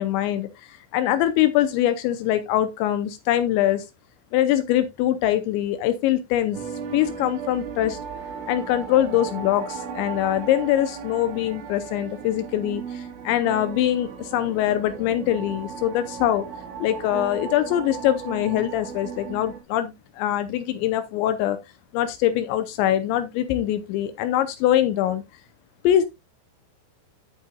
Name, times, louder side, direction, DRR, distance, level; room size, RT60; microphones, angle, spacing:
voice 1, 0.0-3.8 4.3-6.6 6.9-8.0 8.5-16.5 16.8-21.6 21.9-25.2 25.8-26.1, left 12 dB, 85° left, 2.6 m, -23 dB
sound 1, 6.5-19.6, right 6 dB, 70° right, 4.2 m, -36 dB
10.5 x 8.4 x 2.3 m
omnidirectional pair, 5.9 m